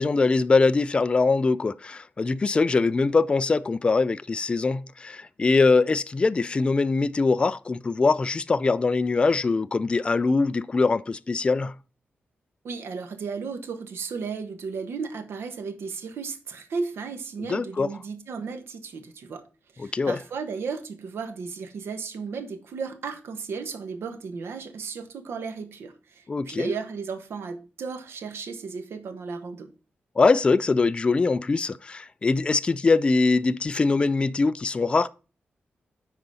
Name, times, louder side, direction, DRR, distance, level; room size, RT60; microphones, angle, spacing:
voice 1, 0.0-11.7 17.5-17.9 19.8-20.2 26.3-26.7 30.2-35.1, left 3 dB, 25° left, 0.3 m, -22 dB
voice 2, 12.6-19.4 19.7-29.7, right 5 dB, 85° right, 1.3 m, -34 dB
10.0 x 4.0 x 5.4 m
wide cardioid pair, 145°, 4 cm